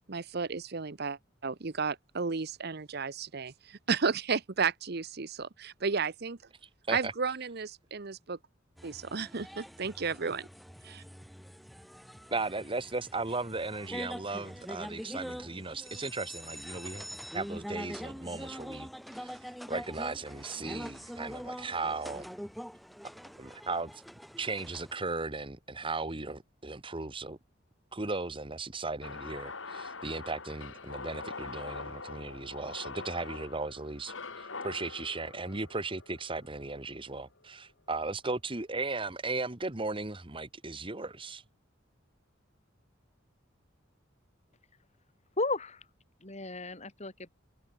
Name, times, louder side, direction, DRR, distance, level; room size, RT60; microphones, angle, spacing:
voice 1, 0.1-6.4 6.9-8.4 8.8-10.5 10.8-11.0, right 5 dB, 55° right, 0.9 m, -33 dB
sound 1, 8.8-25.0, equal, ahead, 1.5 m, -44 dB
voice 2, 12.3-17.1 17.3-22.3 23.4-24.0 24.4-27.4 27.9-41.4, right 3 dB, 25° right, 1.6 m, -36 dB
sound 2, 29.0-37.2, left 4 dB, 85° left, 3.7 m, -44 dB
voice 3, 45.4-45.8 46.2-47.3, left 2 dB, 35° left, 5.2 m, -34 dB
head